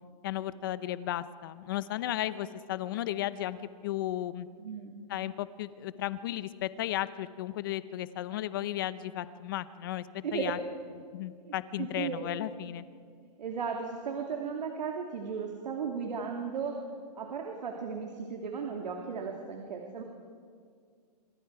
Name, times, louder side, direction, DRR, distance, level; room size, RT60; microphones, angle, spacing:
voice 1, 0.2-4.5 5.1-10.0 10.3-10.6 11.1-12.8, left 13 dB, 30° left, 15 dB, 0.7 m, -34 dB
voice 2, 4.6-5.0 10.2-10.6 11.5-12.2 12.8-12.9 13.4-16.8 17.2-20.0, right 6 dB, 85° right, 1 dB, 3.0 m, -36 dB
27.0 x 25.0 x 4.9 m, 2.1 s
hypercardioid pair, 175°, 21 cm